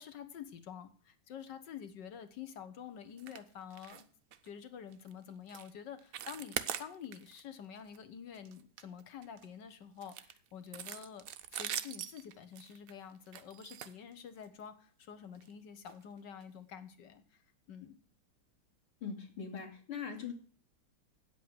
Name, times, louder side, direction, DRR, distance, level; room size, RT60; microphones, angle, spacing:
voice 1, 0.0-4.0 4.4-17.4 17.7-18.0, left 8 dB, 60° left, 10 dB, 1.7 m, -48 dB
sound 1, 3.2-3.4 3.7-4.0 4.3-4.5 4.9-5.1 5.5-5.7 6.0-7.4 7.8-8.0 8.3-9.5 10.0-14.6 15.3-15.5 15.9-16.0 16.4-16.5, right 10 dB, 80° right, 0.7 m, -43 dB
voice 2, 19.0-20.3, left 6 dB, 85° left, 0 dB, 3.4 m, -41 dB
9.6 x 8.2 x 6.6 m, 0.43 s
omnidirectional pair, 2.4 m